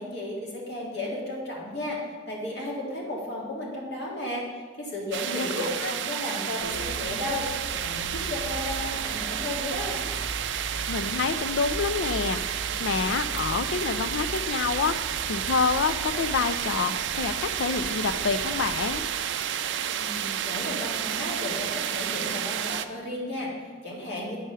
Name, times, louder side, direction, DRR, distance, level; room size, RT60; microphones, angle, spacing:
voice 1, 0.0-2.0 2.3-10.0 20.0-24.4, left 1 dB, 60° left, -3 dB, 2.0 m, -34 dB
sound 1, 5.1-22.9, right 9 dB, 75° right, 0.4 m, -31 dB
sound 2, 6.6-19.1, equal, 40° left, 0.6 m, -40 dB
voice 2, 10.9-12.4 12.8-19.0, left 5 dB, 90° left, 12 dB, 0.4 m, -27 dB
8.8 x 4.8 x 5.6 m, 1.5 s
head